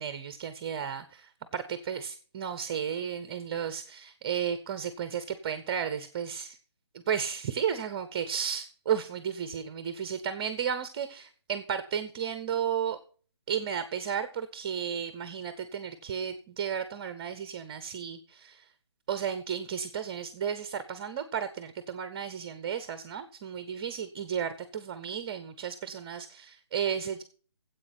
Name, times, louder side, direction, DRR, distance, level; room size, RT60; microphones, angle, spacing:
voice 1, 0.0-6.6 7.1-13.0 13.5-18.6 19.1-27.2, right 8 dB, 20° right, 12 dB, 0.5 m, -33 dB
9.7 x 8.0 x 7.8 m, 0.42 s
hypercardioid pair, 165°, 14 cm